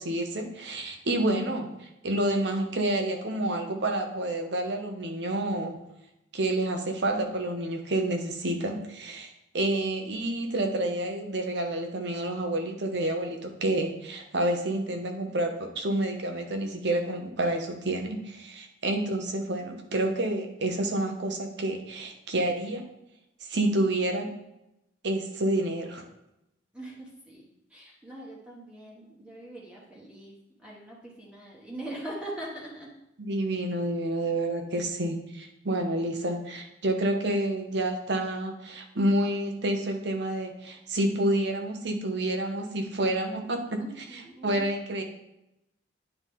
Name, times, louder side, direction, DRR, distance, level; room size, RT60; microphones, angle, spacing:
voice 1, 0.0-1.7 2.0-5.8 6.3-22.8 23.5-24.3 25.0-26.0 33.2-43.8 44.1-45.0, right 1 dB, 65° right, 4 dB, 0.9 m, -29 dB
voice 2, 26.7-32.9 43.8-44.6, right 1 dB, 5° right, -5 dB, 1.2 m, -42 dB
9.5 x 4.0 x 3.6 m, 0.87 s
head